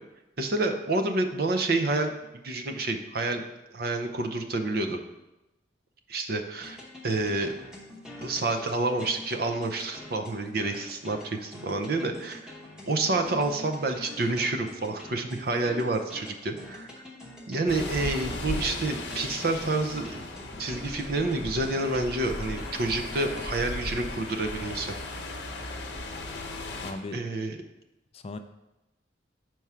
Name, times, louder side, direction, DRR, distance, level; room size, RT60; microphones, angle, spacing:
voice 1, 0.4-2.1 2.4-3.4 3.7-5.0 6.1-6.8 7.0-7.5 8.2-12.5 12.9-16.9 17.5-20.3 20.6-25.0 27.1-27.6, right 2 dB, 55° right, 5 dB, 0.6 m, -28 dB
sound 1, 6.6-23.4, left 1 dB, 5° right, 0.9 m, -45 dB
sound 2, 17.7-26.9, left 2 dB, 65° left, 0.9 m, -37 dB
voice 2, 26.8-27.2 28.1-28.4, left 2 dB, 30° left, 9 dB, 0.3 m, -37 dB
4.8 x 4.6 x 5.6 m, 0.98 s
head